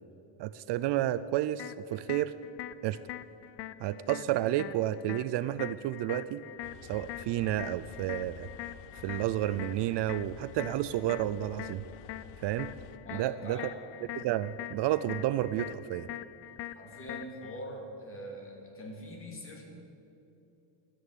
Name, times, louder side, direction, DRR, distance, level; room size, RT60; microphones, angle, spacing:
voice 1, 0.4-2.4 2.8-3.0 3.8-6.4 6.8-8.5 8.9-11.8 12.4-12.7 13.1-13.6 14.2-16.1, right 13 dB, 60° right, 14 dB, 0.5 m, -31 dB
sound 1, 1.6-17.6, left 14 dB, 55° left, 0.6 m, -44 dB
sound 2, 6.6-13.0, left 7 dB, 90° left, 1.0 m, -51 dB
voice 2, 13.0-13.7 16.7-19.6, equal, 25° left, 1 dB, 2.8 m, -43 dB
12.5 x 10.0 x 9.7 m, 2.8 s
cardioid pair, 150°, 49 cm